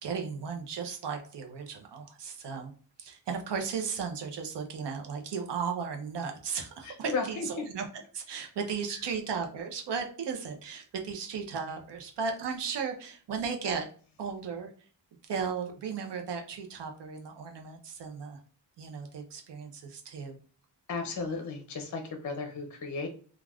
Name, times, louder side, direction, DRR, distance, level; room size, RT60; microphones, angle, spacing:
voice 1, 0.0-2.7 3.0-7.9 8.1-13.9 14.2-14.7 15.3-18.4 18.8-20.4, right 6 dB, 70° right, 3 dB, 0.6 m, -35 dB
voice 2, 6.8-7.7 8.9-9.0 20.9-23.1, left 4 dB, 40° left, 4 dB, 0.5 m, -34 dB
2.4 x 2.3 x 3.3 m, 0.42 s
wide cardioid pair, 160°, 44 cm